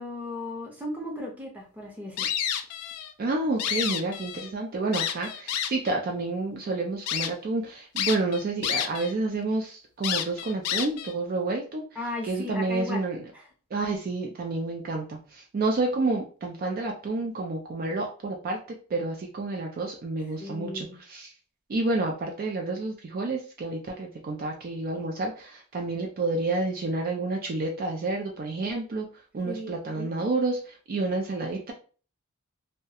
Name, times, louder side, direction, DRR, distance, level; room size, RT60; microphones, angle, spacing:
voice 1, 0.0-2.3 12.0-13.0 13.3-13.5 20.4-20.9 29.5-30.3, left 2 dB, 5° right, -2 dB, 0.6 m, -36 dB
sound 1, 2.2-3.1 3.4-4.5 4.9-5.9 6.5-6.6 7.1-7.3 8.0-9.1 9.4-9.5 10.0-11.1, left 9 dB, 80° left, 0.3 m, -29 dB
voice 2, 3.2-11.8 12.2-13.3 13.7-18.6 18.9-21.3 21.7-29.1 29.3-31.7, right 3 dB, 40° right, 2 dB, 0.4 m, -29 dB
2.3 x 2.1 x 2.7 m, 0.38 s
head